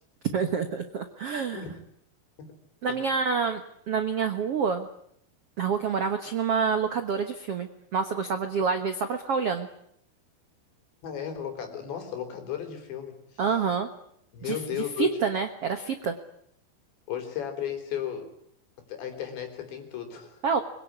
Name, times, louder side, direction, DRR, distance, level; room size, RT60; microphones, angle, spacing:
voice 1, 0.3-1.6 2.8-3.6 3.9-4.9 5.6-9.7 13.4-13.9 14.4-14.6 15.0-16.1 20.4-20.6, right 6 dB, 70° right, 8 dB, 1.4 m, -27 dB
voice 2, 11.0-13.2 14.3-15.2 17.1-18.3 18.9-20.6, left 9 dB, 90° left, 6 dB, 6.1 m, -34 dB
24.5 x 22.0 x 9.8 m, 0.70 s
omnidirectional pair, 5.0 m